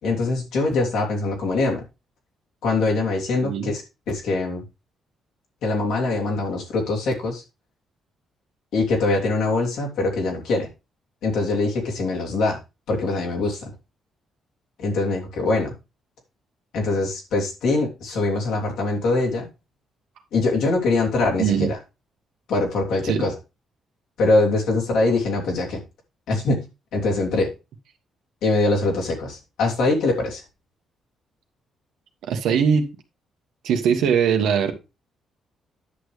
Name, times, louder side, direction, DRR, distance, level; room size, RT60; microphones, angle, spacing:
voice 1, 0.0-1.8 2.6-3.8 4.1-4.6 5.6-7.4 8.7-10.7 11.2-12.6 12.9-13.7 14.8-15.7 16.7-19.5 20.3-21.8 22.5-23.3 24.2-25.8 26.3-26.6 26.9-27.5 28.4-30.4, left 3 dB, 80° left, 2.9 m, -23 dB
voice 2, 3.4-3.7 21.4-21.7 23.0-23.2 32.3-32.9 33.6-34.7, right 7 dB, 80° right, 1.5 m, -20 dB
10.0 x 6.5 x 3.3 m
cardioid pair, 90°, 0 cm